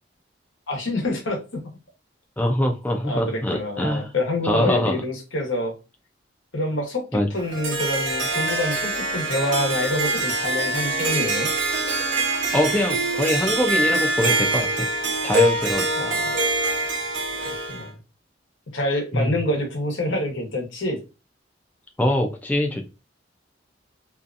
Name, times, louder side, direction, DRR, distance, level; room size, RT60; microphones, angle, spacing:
voice 1, 0.7-1.4 3.0-5.7 6.5-11.5 16.0-16.3 17.7-18.0 18.7-21.0, left 1 dB, 85° left, 1 dB, 1.0 m, -27 dB
voice 2, 2.4-4.1 4.4-5.0 7.1-7.3 12.5-14.7 15.2-15.9 19.1-19.4 22.0-22.8, left 1 dB, 10° left, 2 dB, 0.4 m, -23 dB
Harp, 7.4-17.9, right 2 dB, 80° right, 0.7 m, -24 dB
2.7 x 2.3 x 2.4 m, 0.28 s
head